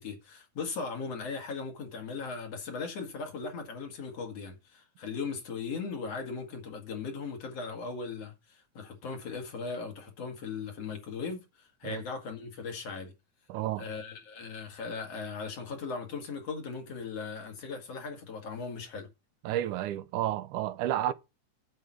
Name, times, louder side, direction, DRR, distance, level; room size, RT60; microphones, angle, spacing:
voice 1, 0.0-13.1 13.8-19.1, left 5 dB, 55° left, 2.9 m, -38 dB
voice 2, 13.5-13.9 19.4-21.1, right 13 dB, 90° right, 2.3 m, -31 dB
9.0 x 8.1 x 4.5 m
omnidirectional pair, 3.4 m